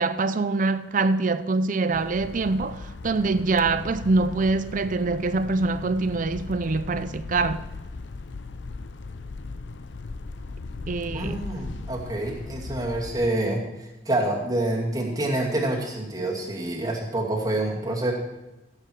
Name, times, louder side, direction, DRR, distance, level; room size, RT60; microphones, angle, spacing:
voice 1, 0.0-7.7 10.9-11.5, right 3 dB, 45° right, 0.5 m, -24 dB
sound 1, 1.9-13.3, left 3 dB, 85° left, 0.6 m, -38 dB
voice 2, 11.1-18.1, right 1 dB, 20° right, 2.6 m, -27 dB
16.0 x 8.1 x 4.7 m
head